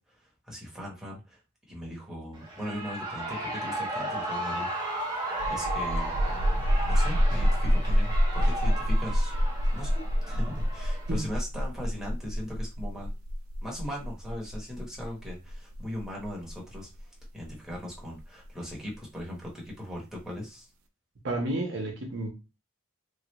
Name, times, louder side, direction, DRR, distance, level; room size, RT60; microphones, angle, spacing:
voice 1, 0.1-1.4 1.7-4.7 5.0-5.2 5.5-6.1 6.9-9.3 9.7-13.1 13.6-20.7, left 1 dB, ahead, 1.0 m, -39 dB
Shout / Cheering, 2.3-11.3, right 1 dB, 20° right, 0.7 m, -35 dB
sound 1, 5.3-18.7, equal, 70° right, 0.5 m, -27 dB
voice 2, 21.2-22.3, right 2 dB, 55° right, 0.8 m, -31 dB
3.2 x 2.4 x 3.0 m
head